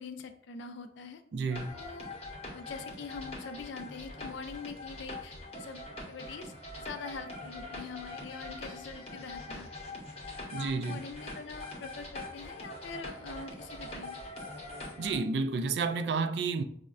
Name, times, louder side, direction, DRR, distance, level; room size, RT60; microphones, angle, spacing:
voice 1, 0.0-1.2 1.7-2.1 2.5-5.8 6.1-10.0 10.6-14.2, left 5 dB, 90° left, 0.4 m, -44 dB
voice 2, 1.3-1.7 10.5-11.0 15.0-16.6, right 4 dB, 70° right, 0.3 m, -31 dB
sound 1, 1.5-15.2, left 2 dB, 35° left, 0.7 m, -43 dB
5.5 x 2.1 x 2.4 m
head